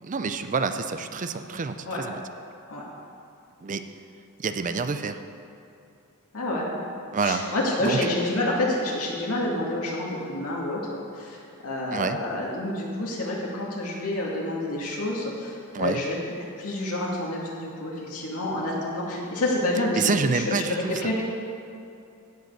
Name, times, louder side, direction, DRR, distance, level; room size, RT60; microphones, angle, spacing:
voice 1, 0.0-2.1 3.6-3.8 4.4-5.2 7.1-7.4 7.8-8.0 11.9-12.2 15.7-16.0 19.9-21.1, right 4 dB, 35° right, 9 dB, 0.5 m, -27 dB
voice 2, 6.3-6.7 7.2-10.8 11.1-11.4 11.6-16.2 16.6-21.2, left 1 dB, 80° left, -4 dB, 2.2 m, -28 dB
16.0 x 5.3 x 6.7 m, 2.5 s
head